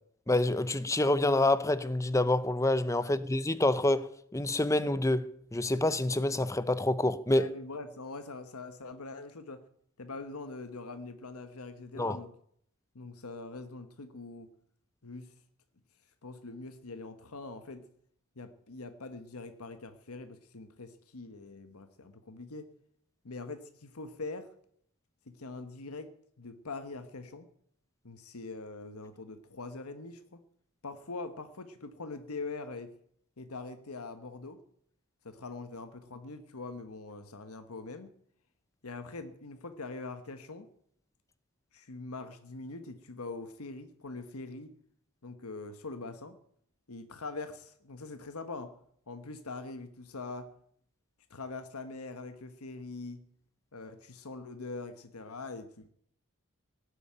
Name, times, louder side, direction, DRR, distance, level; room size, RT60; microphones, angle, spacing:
voice 1, 0.3-7.5 12.0-12.2, left 2 dB, 15° left, 0.7 m, -27 dB
voice 2, 7.3-9.6 10.0-12.3 12.9-14.5 15.0-15.3 16.2-17.9 18.4-22.7 23.2-24.5 25.3-27.5 28.0-30.4 30.8-32.9 33.4-34.6 35.2-38.1 38.8-40.7 41.7-44.8 45.2-46.4 46.9-48.7 49.1-50.5 51.3-53.2 53.7-55.9, left 3 dB, 85° left, 1.2 m, -43 dB
18.5 x 8.2 x 9.0 m
head